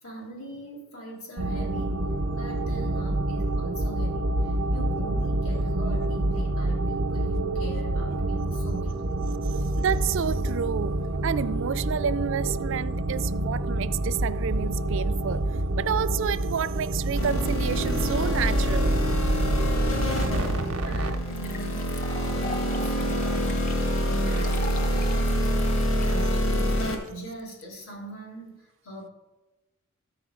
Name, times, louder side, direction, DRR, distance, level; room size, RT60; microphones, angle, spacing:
voice 1, 0.0-9.2 20.3-29.1, right 2 dB, 85° left, 3.1 m, -41 dB
sound 1, 1.4-21.2, right 1 dB, 80° right, 0.7 m, -27 dB
voice 2, 9.8-15.4 15.8-19.0, right 7 dB, 60° right, 0.4 m, -29 dB
sound 2, 17.2-26.9, equal, 65° left, 1.8 m, -26 dB
sound 3, 20.7-20.8 21.3-27.6, left 3 dB, 40° left, 0.7 m, -41 dB
13.5 x 4.9 x 5.0 m
head